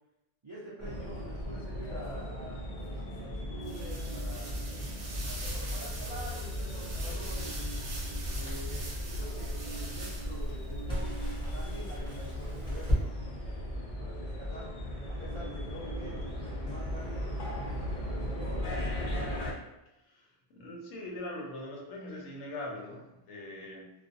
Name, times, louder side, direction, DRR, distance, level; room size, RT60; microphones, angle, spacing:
voice 1, 0.4-4.6 5.2-7.6 8.3-14.7 15.1-18.9, equal, 55° right, -9 dB, 0.3 m, -46 dB
sound 1, 0.8-19.5, equal, 55° left, 0.6 m, -37 dB
sound 2, 3.6-10.5, right 2 dB, 85° right, 1.0 m, -43 dB
Crackle, 5.1-13.0, equal, 5° left, 0.8 m, -38 dB
voice 2, 20.0-23.9, left 1 dB, 80° left, -1 dB, 0.9 m, -42 dB
2.4 x 2.1 x 2.5 m, 0.92 s
omnidirectional pair, 1.2 m